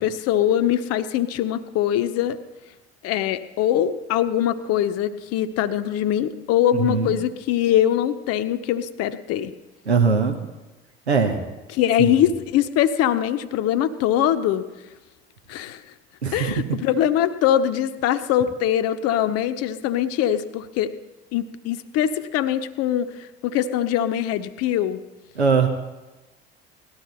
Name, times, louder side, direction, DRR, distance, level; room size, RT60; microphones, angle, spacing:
voice 1, 0.0-2.4 3.0-9.5 11.8-14.6 15.5-15.8 16.3-20.9 21.3-25.0, left 11 dB, 50° left, 12 dB, 0.9 m, -22 dB
voice 2, 6.8-7.2 9.8-10.4 11.1-11.4 12.0-12.1 16.2-16.8 25.3-25.7, right 5 dB, 85° right, 4 dB, 1.1 m, -21 dB
18.5 x 13.0 x 4.2 m, 1.1 s
figure-of-eight pair, 60°, 32 cm